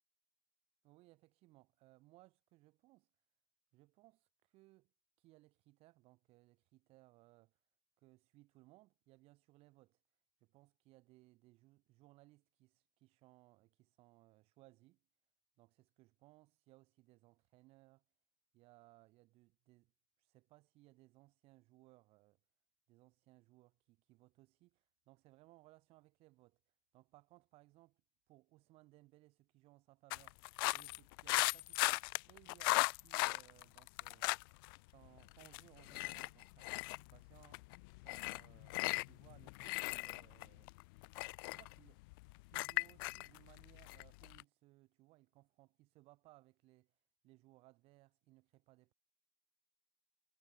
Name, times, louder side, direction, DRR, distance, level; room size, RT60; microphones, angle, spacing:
voice 1, 0.8-3.1 3.7-4.9 5.2-7.6 8.0-10.0 10.4-15.0 15.6-18.0 18.5-19.9 20.2-22.4 22.9-28.0 28.3-34.3 34.8-40.7 41.5-42.0 42.5-48.9, right 20 dB, 55° right, 6.8 m, -66 dB
sound 1, 30.1-34.8 35.1-44.4, left 26 dB, 65° left, 0.4 m, -37 dB
supercardioid pair, 110°, 12 cm